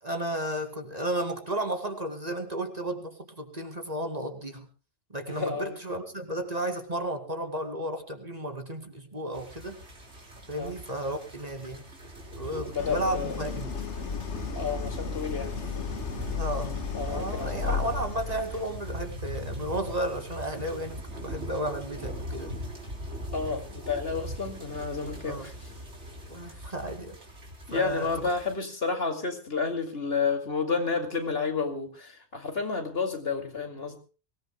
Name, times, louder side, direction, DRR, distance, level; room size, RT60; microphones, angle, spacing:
voice 1, 0.0-4.7 5.1-9.8 10.5-11.8 12.4-13.7 16.3-16.8 17.1-22.5 25.2-25.5 26.3-27.2 27.7-28.1, right 1 dB, 35° right, 6 dB, 2.4 m, -33 dB
voice 2, 5.3-5.8 10.6-10.7 12.6-13.4 14.6-15.9 16.9-17.6 23.3-25.5 27.7-34.0, left 5 dB, 60° left, 5 dB, 2.7 m, -31 dB
sound 1, 9.3-28.5, equal, 80° right, 4.1 m, -41 dB
Idling, 12.8-18.9, left 6 dB, 85° left, 1.6 m, -34 dB
24.5 x 18.0 x 2.2 m, 0.35 s
omnidirectional pair, 1.2 m